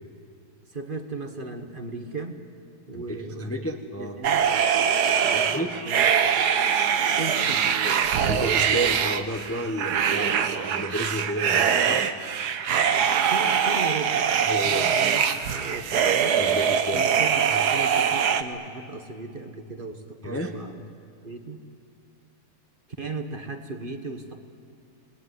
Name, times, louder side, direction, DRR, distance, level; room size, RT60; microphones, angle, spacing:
voice 1, 0.7-2.4 2.9-3.5 4.0-4.4 5.2-5.6 5.8-6.1 7.2-8.0 13.1-15.2 15.5-16.4 16.9-17.4 17.7-20.8 21.2-21.6 23.0-24.4, right 3 dB, 35° right, 5 dB, 1.5 m, -36 dB
voice 2, 2.9-4.2 5.3-5.8 8.3-12.1 14.5-14.9 16.4-17.1 17.5-17.6 20.2-20.5, right 1 dB, 10° left, 5 dB, 1.0 m, -31 dB
sound 1, 4.2-18.4, right 7 dB, 85° right, 1.6 m, -23 dB
27.0 x 20.0 x 9.7 m, 2.4 s
omnidirectional pair, 1.7 m